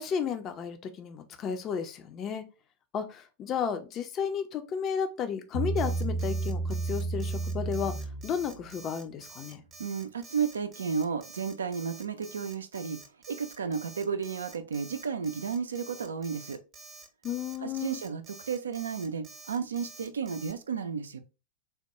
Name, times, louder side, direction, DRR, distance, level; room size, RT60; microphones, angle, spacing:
voice 1, 0.0-2.4 2.9-7.9 8.2-9.6 17.2-18.0, left 7 dB, 30° left, 0.5 m, -33 dB
Bass guitar, 5.5-8.9, right 3 dB, 80° left, 1.5 m, -32 dB
Alarm, 5.8-20.5, right 3 dB, 25° right, 0.6 m, -49 dB
voice 2, 9.8-13.0 13.3-16.6 17.6-21.2, right 6 dB, 70° right, 0.4 m, -33 dB
3.4 x 2.2 x 2.9 m
figure-of-eight pair, 90°, 0 cm